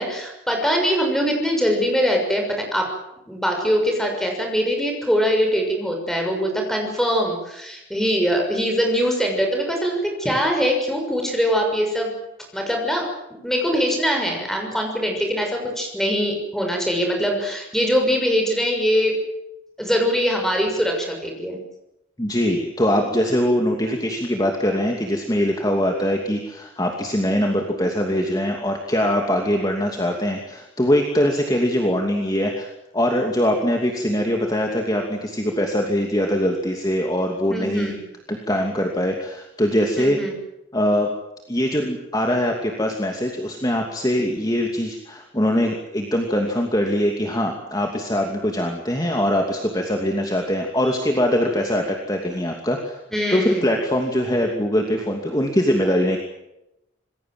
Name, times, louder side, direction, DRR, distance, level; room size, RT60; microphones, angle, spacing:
voice 1, 0.0-2.9 3.3-12.1 12.5-13.1 13.4-19.2 19.8-21.6 37.5-38.0 39.9-40.3 53.1-53.7, equal, ahead, 2 dB, 6.5 m, -22 dB
voice 2, 22.2-37.9 38.3-40.2 40.7-41.1 41.5-53.0 53.3-56.2, equal, 20° left, 2 dB, 2.7 m, -22 dB
27.0 x 21.0 x 7.9 m, 0.90 s
head